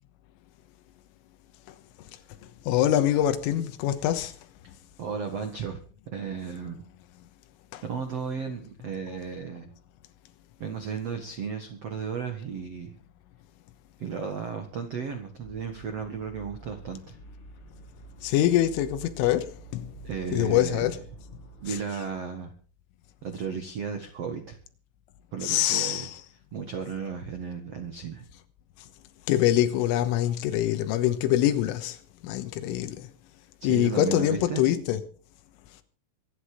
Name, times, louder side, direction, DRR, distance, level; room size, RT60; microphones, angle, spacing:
voice 1, 2.7-4.3 7.7-7.8 18.2-19.9 20.3-21.0 21.7-22.0 25.4-26.2 29.3-32.0 32.2-33.1 33.6-35.0, left 12 dB, 85° left, 3.7 m, -24 dB
voice 2, 5.0-5.8 6.1-6.8 7.8-9.7 10.6-12.9 14.0-17.2 20.0-21.0 21.6-22.5 23.2-24.6 25.3-26.1 26.5-28.2 33.6-34.6, right 6 dB, 75° right, 1.4 m, -34 dB
sound 1, 15.4-21.8, right 1 dB, 35° left, 2.6 m, -47 dB
25.0 x 8.6 x 5.0 m
omnidirectional pair, 5.7 m